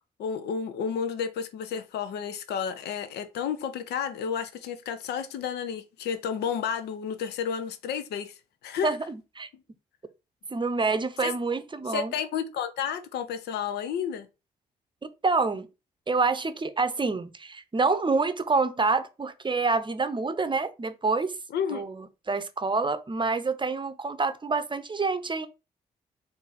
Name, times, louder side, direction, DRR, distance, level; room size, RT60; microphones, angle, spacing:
voice 1, 0.2-8.4 8.6-9.0 11.2-11.3 11.9-14.3 21.5-21.8, left 7 dB, 80° left, 0.5 m, -31 dB
voice 2, 8.8-9.5 10.5-12.1 15.2-15.7 16.1-21.3 21.7-25.5, right 4 dB, 30° right, 0.7 m, -27 dB
4.0 x 2.6 x 3.9 m
hypercardioid pair, 45°, 17 cm